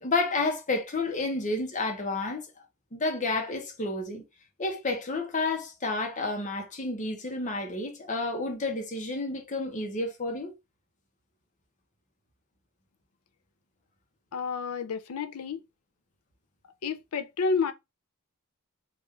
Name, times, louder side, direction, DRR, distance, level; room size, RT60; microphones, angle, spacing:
voice 1, 0.0-2.5 2.9-4.2 4.6-10.5, left 3 dB, 35° left, 0.9 m, -30 dB
voice 2, 14.3-15.6 16.8-17.7, left 5 dB, 70° left, 0.5 m, -30 dB
3.5 x 2.5 x 3.2 m
head